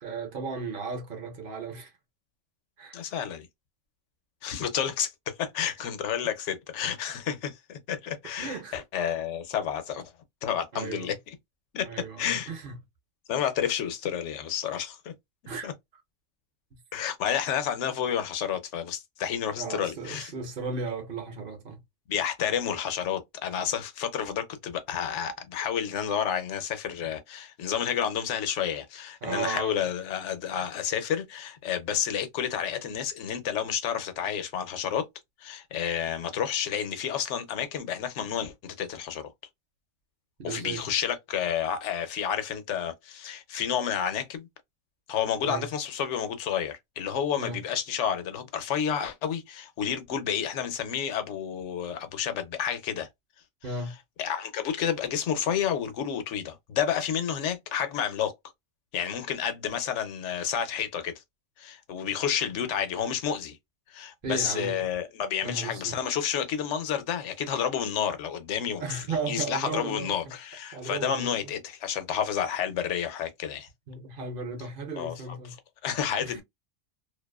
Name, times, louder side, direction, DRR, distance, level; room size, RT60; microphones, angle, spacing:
voice 1, 0.0-1.9 2.8-3.0 5.6-5.7 8.4-8.8 10.7-11.1 11.8-12.8 15.5-15.7 19.6-21.8 29.2-29.8 40.4-40.9 45.4-45.7 47.4-47.6 53.6-54.0 64.2-64.8 65.4-66.0 68.8-70.2 70.7-71.3 73.9-75.5 76.2-76.4, right 4 dB, 55° right, 0.8 m, -35 dB
voice 2, 2.9-3.5 4.4-10.1 10.4-11.2 11.7-12.5 13.3-15.1 15.6-15.7 16.9-20.3 22.1-35.1 35.4-39.3 40.4-44.5 45.1-53.1 54.2-58.3 58.9-61.2 61.6-63.6 63.9-73.7 75.0-75.4 75.8-76.4, left 8 dB, 90° left, 1.0 m, -30 dB
2.5 x 2.3 x 2.2 m
omnidirectional pair, 1.2 m